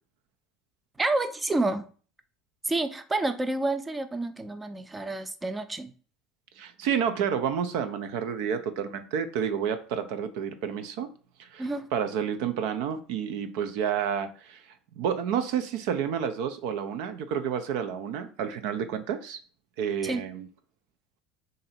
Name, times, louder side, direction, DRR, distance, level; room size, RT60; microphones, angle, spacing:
voice 1, 1.0-1.8 2.6-5.9 11.6-11.9 20.0-20.2, right 2 dB, 15° right, 0.5 m, -29 dB
voice 2, 6.6-11.1 11.4-14.6 15.0-19.4 19.8-20.4, right 8 dB, 70° right, 0.5 m, -30 dB
2.8 x 2.6 x 4.1 m
hypercardioid pair, 80°, 0 cm